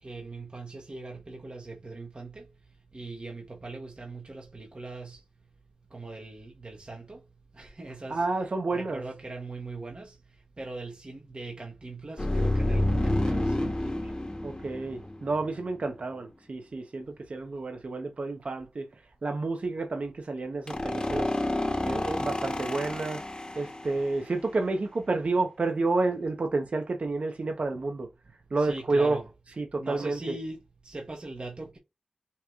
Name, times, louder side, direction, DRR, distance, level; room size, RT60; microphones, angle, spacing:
voice 1, 0.0-2.5 2.9-5.2 5.9-7.2 7.5-8.2 8.7-10.2 10.6-14.2 28.6-29.3 29.8-30.6 30.8-31.8, right 2 dB, 50° right, 1.2 m, -40 dB
voice 2, 8.1-9.0 14.4-18.9 19.2-21.3 21.9-23.2 23.6-28.1 28.5-29.2 29.6-30.4, right 3 dB, 70° right, 0.9 m, -30 dB
sound 1, 12.2-15.6 20.7-24.2, left 1 dB, 35° left, 1.0 m, -29 dB
5.7 x 3.1 x 2.4 m
cardioid pair, 40°, 2 cm